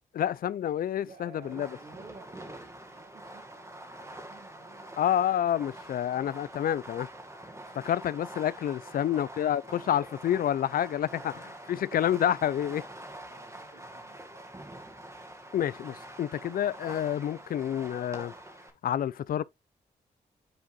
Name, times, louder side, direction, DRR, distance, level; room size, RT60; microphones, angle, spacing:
voice 1, 0.1-1.7 5.0-7.1 7.8-11.3 11.7-12.8 15.5-18.3 18.8-19.4, left 10 dB, 60° left, 0.4 m, -28 dB
voice 2, 1.0-5.0 8.8-9.3 9.6-10.3 10.9-12.1 13.3-14.6, right 4 dB, 70° right, 2.1 m, -54 dB
Fireworks, 1.4-18.7, right 1 dB, 15° right, 1.9 m, -46 dB
8.8 x 4.5 x 2.5 m
supercardioid pair, 45°, 17 cm